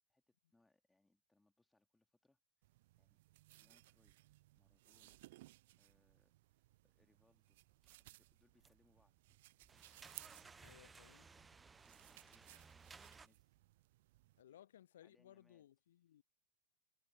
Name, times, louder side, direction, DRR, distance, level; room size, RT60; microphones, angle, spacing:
voice 1, 0.1-2.7 3.0-3.2 3.6-5.2 5.8-7.6 7.9-9.1 10.3-12.7 13.2-13.6 14.5-14.6 14.9-15.7, left 2 dB, 5° left, 2.8 m, -78 dB
sound 1, 2.6-14.4, right 18 dB, 50° right, 0.5 m, -63 dB
sound 2, 7.8-8.0 8.6-9.0 9.3-13.3, right 4 dB, 15° right, 1.0 m, -60 dB
voice 2, 10.6-11.3 14.4-16.2, left 11 dB, 60° left, 0.4 m, -62 dB
figure-of-eight pair, 90°, 0 cm